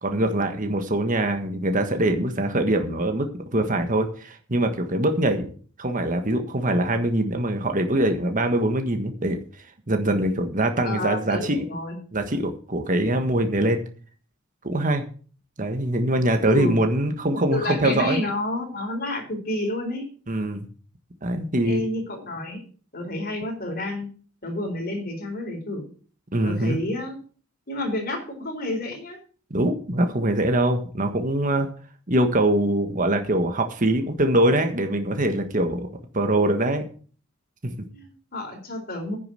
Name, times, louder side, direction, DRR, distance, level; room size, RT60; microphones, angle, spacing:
voice 1, 0.0-5.5 5.8-9.4 9.9-11.6 12.1-13.8 14.6-15.0 15.6-18.2 20.3-20.7 21.2-21.8 26.3-26.8 29.5-31.7 32.1-35.9 36.1-36.8 37.6-37.8, right 1 dB, 40° right, 6 dB, 1.5 m, -23 dB
voice 2, 10.8-12.0 16.5-16.8 17.5-20.1 21.6-22.6 22.9-24.1 24.4-25.9 26.4-27.2 27.7-29.2 37.9-39.2, left 1 dB, 45° left, 2 dB, 4.0 m, -29 dB
9.8 x 6.8 x 7.6 m, 0.41 s
head